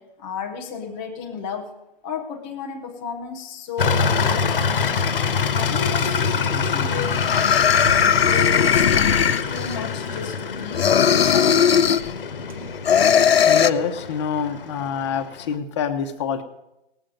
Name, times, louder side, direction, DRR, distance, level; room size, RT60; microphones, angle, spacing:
voice 1, 0.0-1.7 2.0-4.9 5.5-7.7 8.0-11.8, left 6 dB, 5° left, 1 dB, 0.4 m, -33 dB
sound 1, 3.8-15.5, left 5 dB, 60° left, 1.1 m, -25 dB
sound 2, 6.5-6.6 7.0-9.8 10.7-12.1 12.8-13.7, left 8 dB, 80° left, 0.7 m, -18 dB
sound 3, 7.8-12.9, right 3 dB, 35° right, 1.1 m, -42 dB
voice 2, 13.5-16.4, left 7 dB, 30° left, 5 dB, 0.9 m, -26 dB
18.5 x 7.6 x 5.2 m, 0.92 s
hypercardioid pair, 150°, 30 cm